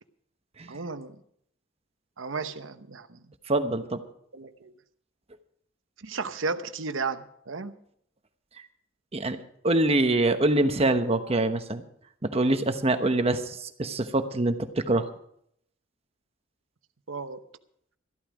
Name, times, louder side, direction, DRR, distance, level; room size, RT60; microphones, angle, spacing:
voice 1, 0.7-1.2 2.2-3.2 4.3-4.7 6.0-7.7 17.1-17.4, right 4 dB, 90° right, 10 dB, 0.9 m, -34 dB
voice 2, 3.5-4.0 9.1-9.4 9.6-11.8 12.2-15.1, right 2 dB, 30° right, 8 dB, 1.0 m, -24 dB
14.0 x 12.5 x 5.0 m, 0.69 s
head